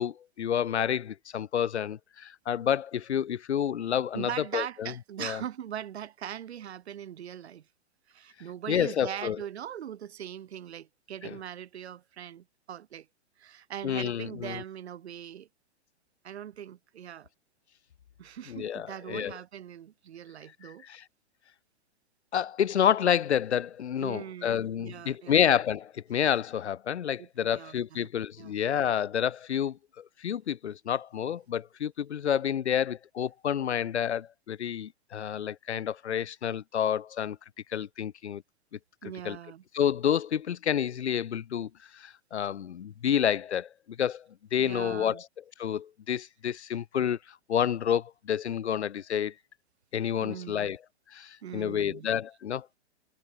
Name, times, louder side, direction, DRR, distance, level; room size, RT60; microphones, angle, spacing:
voice 1, 0.0-4.9 5.2-5.4 8.7-9.4 11.2-11.4 13.8-14.6 18.5-19.3 20.6-21.0 22.3-37.4 37.7-38.4 39.2-39.4 39.7-44.2 44.5-45.3 45.6-47.2 47.5-49.3 49.9-50.8 51.1-52.7, left 9 dB, 75° left, 5.7 m, -29 dB
voice 2, 4.1-7.6 8.1-13.1 13.4-15.5 16.2-17.3 18.2-20.8 24.0-25.4 27.2-28.1 28.4-28.5 39.0-39.6 44.6-45.2 50.2-50.8 51.4-52.1, right 10 dB, 70° right, 7.4 m, -41 dB
hypercardioid pair, 140°, 33 cm